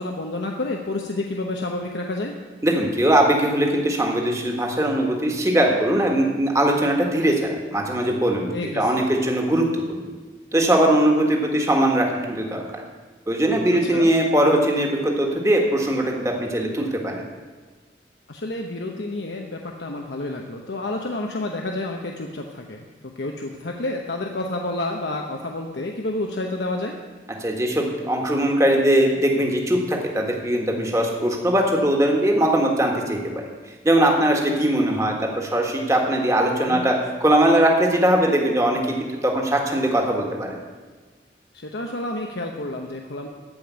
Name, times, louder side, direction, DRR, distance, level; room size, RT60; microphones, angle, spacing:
voice 1, 0.0-2.3 8.5-9.1 13.8-14.1 18.3-22.9 23.2-27.0 36.7-36.8 41.5-43.3, left 2 dB, 85° left, 1 dB, 0.9 m, -29 dB
voice 2, 2.6-7.3 7.7-8.5 8.7-10.0 10.5-12.6 13.3-17.2 27.4-33.2 33.8-36.9 37.2-40.6, right 1 dB, 20° right, 0 dB, 1.6 m, -20 dB
14.5 x 5.2 x 9.3 m, 1.4 s
head